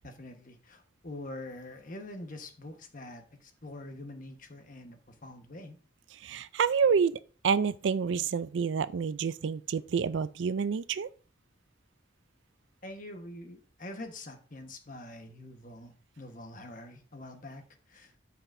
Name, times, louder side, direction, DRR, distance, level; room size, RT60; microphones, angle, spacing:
voice 1, 0.0-5.8 12.8-17.6 17.9-18.1, left 1 dB, 45° left, 1.2 m, -45 dB
voice 2, 6.2-7.2 7.4-11.1, right 6 dB, 70° right, 0.4 m, -28 dB
12.5 x 5.8 x 2.6 m
head